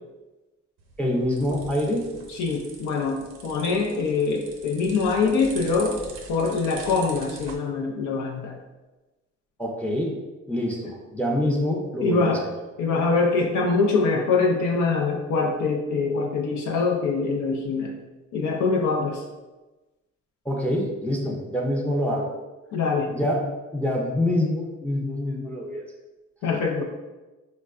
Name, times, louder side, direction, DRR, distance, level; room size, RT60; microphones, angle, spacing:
sound 1, 0.8-7.6, right 3 dB, 80° right, 0.6 m, -43 dB
voice 1, 1.0-2.1 9.6-10.2 10.5-12.4 20.5-22.3 23.1-25.9, left 1 dB, 5° left, -1 dB, 0.5 m, -26 dB
voice 2, 2.3-6.0 6.3-8.6 12.0-12.4 12.8-17.9 18.3-19.2 22.7-23.1 26.4-26.8, left 4 dB, 75° left, 1 dB, 0.5 m, -24 dB
4.3 x 2.2 x 2.4 m, 1.1 s
cardioid pair, 90°, 30 cm